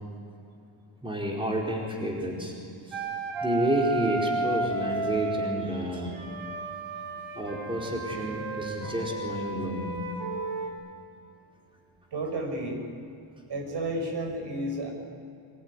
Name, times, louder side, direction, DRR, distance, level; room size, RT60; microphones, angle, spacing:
voice 1, 1.0-2.5 2.9-3.0 3.4-6.3 7.3-9.9, equal, 10° right, -2 dB, 4.6 m, -30 dB
Wind instrument woodwind instrument, 2.9-5.5 6.1-10.7, right 3 dB, 75° right, 4.8 m, -33 dB
voice 2, 12.1-12.8 13.5-14.9, right 1 dB, 55° right, 3 dB, 5.9 m, -31 dB
25.5 x 22.0 x 9.8 m, 2.6 s
wide cardioid pair, 140°, 48 cm